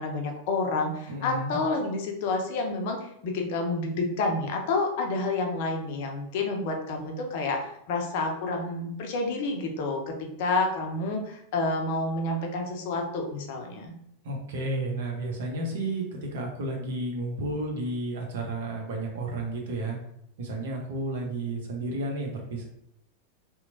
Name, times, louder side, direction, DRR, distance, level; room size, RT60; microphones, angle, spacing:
voice 1, 0.0-13.9, left 3 dB, 50° left, 2 dB, 0.5 m, -29 dB
voice 2, 1.1-1.6 14.2-20.0 20.4-22.7, right 2 dB, 55° right, 0 dB, 0.7 m, -32 dB
2.9 x 2.0 x 2.6 m, 0.75 s
figure-of-eight pair, 90°, 0 cm